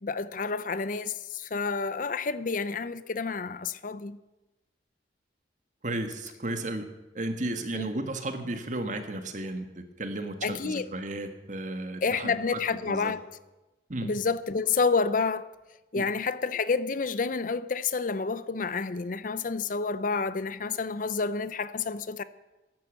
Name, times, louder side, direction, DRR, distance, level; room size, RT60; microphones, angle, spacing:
voice 1, 0.0-4.2 7.7-7.9 10.4-10.9 12.0-13.2 14.0-15.5 15.9-22.2, left 4 dB, 45° left, 0.6 m, -29 dB
voice 2, 5.8-6.9 7.2-12.6 12.9-13.1 13.9-14.1 16.0-16.1, right 1 dB, 45° right, 1.7 m, -34 dB
14.5 x 11.0 x 8.1 m
head